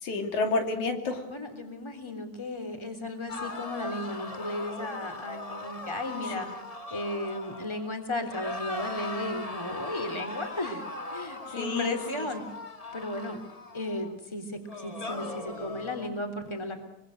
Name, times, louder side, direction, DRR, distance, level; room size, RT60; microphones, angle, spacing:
voice 1, 0.0-1.3 6.2-6.5 11.5-12.3, left 3 dB, 75° left, 4 dB, 4.1 m, -30 dB
voice 2, 1.2-6.5 6.9-10.8 11.1-12.4 12.9-13.4 13.7-16.8, left 1 dB, 10° left, 5 dB, 3.1 m, -35 dB
sound 1, 3.3-7.9 8.3-14.1 14.7-16.1, left 2 dB, 30° left, 0.7 m, -39 dB
24.5 x 24.0 x 6.5 m, 0.83 s
omnidirectional pair, 3.5 m